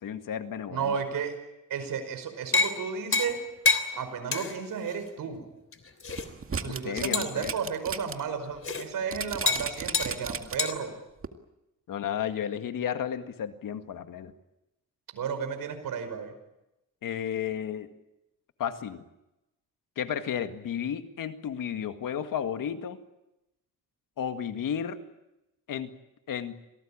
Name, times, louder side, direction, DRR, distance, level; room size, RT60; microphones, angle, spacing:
voice 1, 0.0-1.0 6.7-7.5 11.9-14.3 17.0-17.9 18.6-19.0 20.0-23.0 24.2-25.0 25.7-25.9 26.3-26.6, left 8 dB, 80° left, 9 dB, 2.0 m, -33 dB
voice 2, 0.7-1.3 1.7-3.4 3.9-5.4 6.5-10.9 15.1-16.3, right 6 dB, 80° right, 8 dB, 5.2 m, -33 dB
sound 1, 2.5-2.8 3.1-3.4 3.7-3.9 4.3-4.6 4.9-5.0 5.7-6.3 7.1-7.4 8.6-8.8 9.5-9.7 9.9-10.1 10.6-10.7, left 4 dB, 40° left, 3.2 m, -26 dB
sound 2, 6.1-8.1 8.5-8.6 9.1-10.8 11.2-11.3, right 5 dB, 40° right, 2.1 m, -35 dB
27.0 x 18.5 x 8.8 m, 0.92 s
cardioid pair, 95°, 33 cm